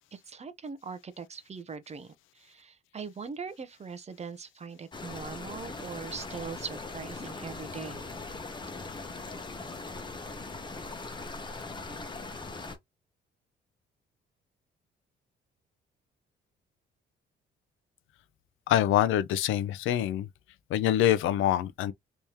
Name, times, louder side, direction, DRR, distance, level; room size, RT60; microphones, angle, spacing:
voice 1, 0.1-8.0, right 5 dB, 35° right, 0.8 m, -41 dB
sound 1, 4.9-12.8, left 3 dB, 25° left, 1.0 m, -40 dB
voice 2, 18.7-20.3 20.7-21.9, left 11 dB, 85° left, 0.5 m, -25 dB
3.4 x 3.1 x 2.8 m
cardioid pair, 90°, 20 cm